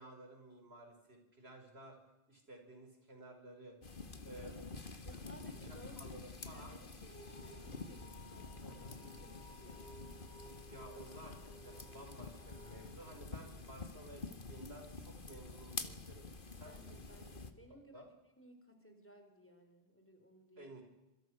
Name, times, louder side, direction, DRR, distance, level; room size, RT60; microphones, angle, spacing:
voice 1, 0.0-2.0 2.3-3.8 4.2-5.2 5.5-6.8 8.6-9.0 10.6-17.3 17.7-18.1 20.6-20.8, right 1 dB, 80° right, 3 dB, 5.8 m, -55 dB
sound 1, 3.8-17.5, left 3 dB, 55° left, 1.9 m, -48 dB
voice 2, 5.0-10.0 13.4-13.6 16.6-20.7, equal, 10° left, 5 dB, 4.2 m, -60 dB
sound 2, 7.0-14.0, equal, 10° right, 7.3 m, -58 dB
26.5 x 24.5 x 6.5 m, 0.97 s
omnidirectional pair, 1.0 m